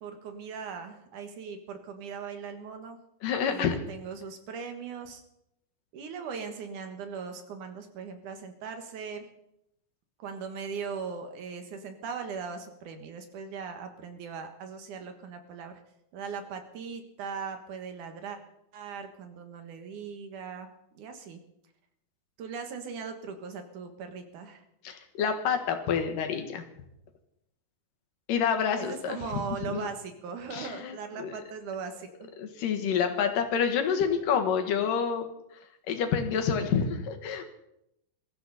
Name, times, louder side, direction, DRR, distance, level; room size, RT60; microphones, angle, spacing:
voice 1, 0.0-3.0 3.5-5.2 5.9-9.2 10.2-15.8 16.1-18.4 18.7-20.7 20.9-21.4 22.4-24.6 28.8-32.3, right 6 dB, 70° right, 6 dB, 3.0 m, -39 dB
voice 2, 3.2-3.8 24.8-26.6 28.3-29.2 29.7-29.9 30.5-31.3 32.4-35.3 35.9-37.4, left 7 dB, 90° left, 6 dB, 3.2 m, -28 dB
22.0 x 13.5 x 4.2 m, 0.82 s
omnidirectional pair, 3.8 m